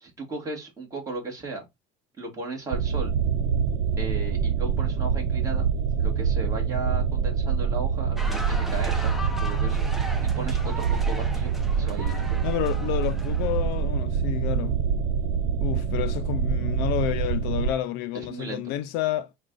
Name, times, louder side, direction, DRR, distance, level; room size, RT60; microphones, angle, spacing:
voice 1, 0.0-1.6 2.2-3.2 4.0-5.7 6.0-9.8 10.2-12.4 18.1-18.7, right 3 dB, 15° right, 1.6 m, -36 dB
sound 1, 2.7-17.7, right 6 dB, 80° right, 0.5 m, -25 dB
sound 2, 8.2-13.8, equal, ahead, 0.5 m, -38 dB
voice 2, 12.4-14.8 15.6-19.3, left 12 dB, 60° left, 0.4 m, -30 dB
4.7 x 2.3 x 3.7 m
cardioid pair, 155°, 20 cm